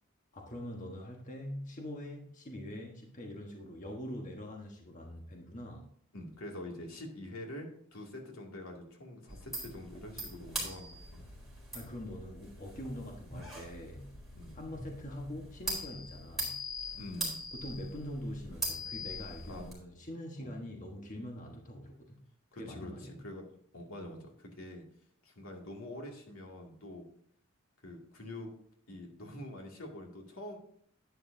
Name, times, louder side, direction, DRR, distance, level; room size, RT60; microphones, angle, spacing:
voice 1, 0.3-5.9 11.7-14.1 14.5-16.6 17.5-22.2 22.6-23.2, left 1 dB, 35° left, 1 dB, 1.3 m, -43 dB
voice 2, 6.1-11.3 14.4-14.5 16.9-17.4 19.5-19.7 20.4-20.5 22.5-23.5 23.7-24.8 25.2-27.1 27.8-28.5 28.9-30.6, left 1 dB, 85° left, 0 dB, 2.4 m, -45 dB
sound 1, 9.3-19.7, equal, ahead, 4.3 m, -42 dB
11.0 x 9.6 x 2.7 m, 0.64 s
head